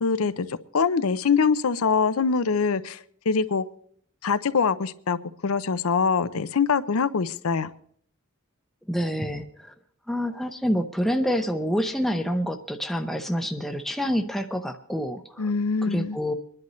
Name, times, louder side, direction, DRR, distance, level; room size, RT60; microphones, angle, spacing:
voice 1, 0.0-3.6 4.2-5.2 5.4-7.7 15.4-16.2, left 5 dB, 75° left, 14 dB, 0.6 m, -24 dB
voice 2, 8.9-9.7 10.1-15.5 15.8-16.3, equal, ahead, 5 dB, 0.7 m, -27 dB
25.5 x 10.5 x 3.2 m, 0.63 s
head